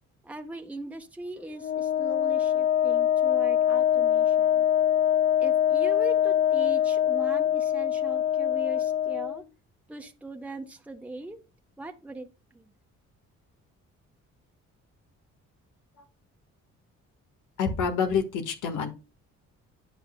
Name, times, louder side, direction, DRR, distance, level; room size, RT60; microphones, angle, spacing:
voice 1, 0.2-4.7 5.4-9.4 9.9-11.4 11.8-12.7, right 2 dB, 5° right, 3 dB, 1.0 m, -40 dB
Wind instrument woodwind instrument, 1.6-9.4, left 10 dB, 45° left, 0.5 m, -24 dB
voice 2, 17.6-18.9, left 6 dB, 90° left, 6 dB, 1.6 m, -27 dB
10.0 x 6.0 x 2.2 m, 0.30 s
cardioid pair, 90°, 30 cm